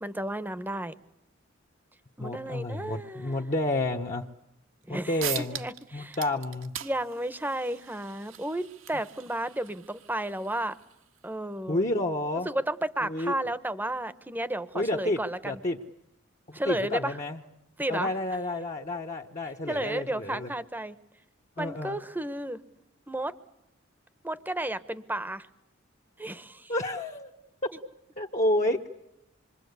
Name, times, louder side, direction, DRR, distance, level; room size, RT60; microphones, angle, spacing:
voice 1, 0.0-0.9 2.2-3.4 4.9-5.2 5.5-6.2 6.8-10.7 11.2-11.8 12.4-15.5 16.5-17.2 17.8-18.1 19.7-21.0 21.6-22.6 23.1-23.3 24.2-25.5 26.2-26.7, right 1 dB, 10° right, 13 dB, 1.0 m, -32 dB
voice 2, 2.2-4.3 4.9-5.6 5.9-6.7 11.7-12.5 13.0-13.3 14.7-15.8 16.5-17.4 17.9-20.5 21.6-22.0 26.7-27.3 28.2-28.9, left 1 dB, 35° left, 0 dB, 1.1 m, -30 dB
sound 1, 4.8-4.9 5.2-5.8 6.1-11.3, right 11 dB, 80° right, 1.7 m, -41 dB
27.0 x 23.5 x 8.2 m, 0.84 s
head